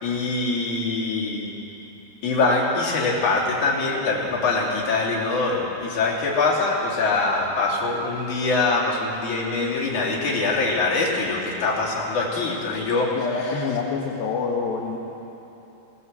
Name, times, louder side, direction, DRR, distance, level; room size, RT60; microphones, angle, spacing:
voice 1, 0.0-1.5 2.2-13.7, left 3 dB, 45° left, -4 dB, 3.9 m, -23 dB
voice 2, 13.2-15.0, left 5 dB, 65° left, -2 dB, 2.7 m, -26 dB
18.5 x 18.5 x 7.5 m, 3.0 s
omnidirectional pair, 5.5 m